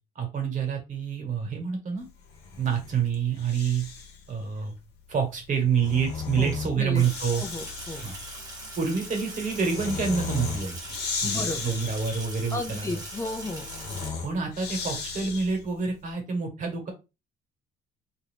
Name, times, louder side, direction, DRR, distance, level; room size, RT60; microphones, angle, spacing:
voice 1, 0.1-2.0 2.6-3.9 4.3-4.7 5.1-7.4 8.0-8.1 8.8-11.0 11.2-13.0 14.2-16.9, right 6 dB, 50° right, 3 dB, 1.2 m, -27 dB
Breathing, 2.3-4.2 5.5-15.8, left 5 dB, 75° left, 0.9 m, -36 dB
Sink (filling or washing), 7.0-14.1, right 2 dB, 25° right, 1.0 m, -41 dB
voice 2, 7.4-8.0 11.2-11.8 12.5-13.7, left 2 dB, 20° left, 4 dB, 0.4 m, -33 dB
2.5 x 2.3 x 3.3 m, 0.27 s
cardioid pair, 110°, 17 cm